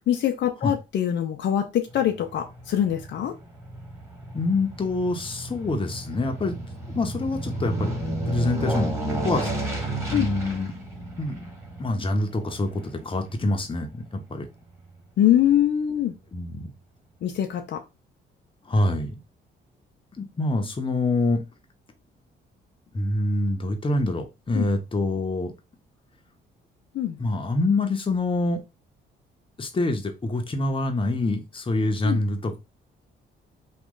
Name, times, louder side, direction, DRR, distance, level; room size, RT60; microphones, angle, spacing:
voice 1, 0.1-3.3 10.1-10.3 15.2-16.1 17.2-17.8 24.5-24.6 26.9-27.2 32.0-32.2, left 11 dB, 65° left, 0.6 m, -23 dB
Aircraft, 1.9-14.4 14.8-14.9, right 1 dB, 15° right, 1.7 m, -32 dB
voice 2, 4.3-6.6 6.9-7.9 8.3-8.9 9.2-9.5 10.1-10.7 11.2-11.5 11.8-14.5 16.3-16.7 18.7-19.1 20.2-21.4 22.9-25.5 27.2-28.6 29.6-32.6, left 2 dB, 25° left, 0.9 m, -26 dB
3.1 x 2.4 x 3.7 m
cardioid pair, 90°, 20 cm